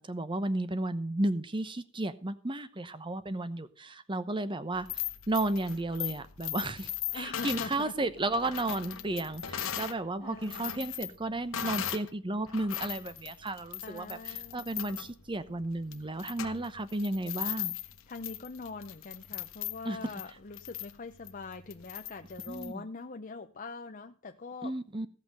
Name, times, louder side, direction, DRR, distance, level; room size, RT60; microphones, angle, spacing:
voice 1, 0.0-17.7 19.8-20.0 22.5-22.8 24.6-25.1, right 2 dB, 20° right, 12 dB, 0.8 m, -33 dB
sound 1, 4.7-10.0 10.3-12.1 12.5-22.7, left 11 dB, 60° left, 1.1 m, -39 dB
voice 2, 7.1-7.9 8.5-8.6 9.6-10.8 13.8-14.6 18.1-24.7, left 4 dB, 35° left, 6 dB, 0.6 m, -43 dB
16.0 x 5.9 x 6.6 m, 0.43 s
head